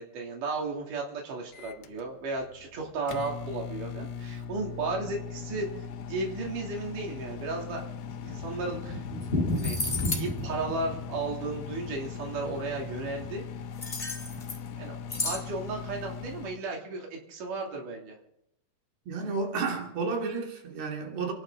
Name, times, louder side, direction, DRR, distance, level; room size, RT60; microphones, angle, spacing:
voice 1, 0.0-5.7 6.1-7.8 8.2-9.0 9.6-9.8 10.1-13.4 14.8-18.2, right 3 dB, 60° right, 4.4 m, -34 dB
Microwave oven, 1.5-16.6, left 7 dB, 80° left, 1.5 m, -40 dB
Thunder, 7.8-13.7 13.9-14.0 14.3-14.4 14.7-14.8 15.3-15.7, left 1 dB, 45° left, 0.7 m, -35 dB
sound 1, 9.2-9.3 9.5-10.3 13.8-14.7 15.1-15.4, left 2 dB, 15° left, 2.1 m, -33 dB
voice 2, 19.1-21.3, right 4 dB, 90° right, 4.6 m, -31 dB
28.5 x 12.0 x 3.9 m
omnidirectional pair, 4.4 m